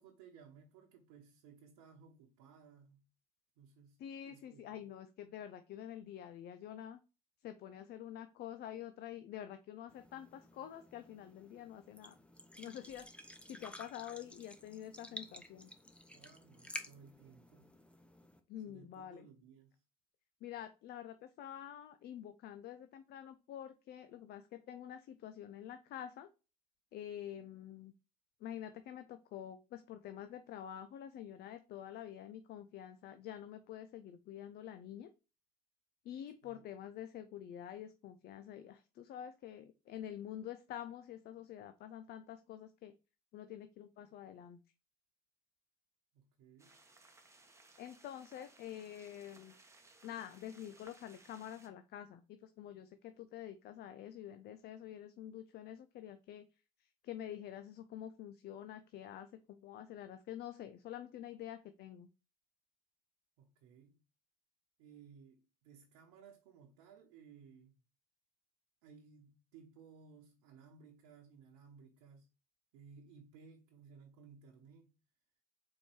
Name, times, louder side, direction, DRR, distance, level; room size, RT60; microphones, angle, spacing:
voice 1, 0.0-3.1 3.6-4.0 4.2-4.8 16.1-17.8 18.7-19.8 36.4-36.7 46.1-46.8 63.4-64.0 64.8-67.7 68.8-72.3 72.7-75.0, right 6 dB, 75° right, 1.1 m, -59 dB
voice 2, 4.0-7.0 7.4-12.1 12.6-15.7 18.5-19.3 20.4-26.3 26.9-27.9 28.4-35.1 36.0-42.9 43.3-44.6 47.8-49.5 50.0-56.4 57.0-62.1, left 10 dB, 50° left, 0.7 m, -48 dB
sound 1, 9.9-18.4, equal, 5° left, 0.9 m, -52 dB
sound 2, 46.6-51.7, right 2 dB, 15° right, 1.1 m, -63 dB
4.7 x 4.4 x 4.5 m
hypercardioid pair, 80°, 21 cm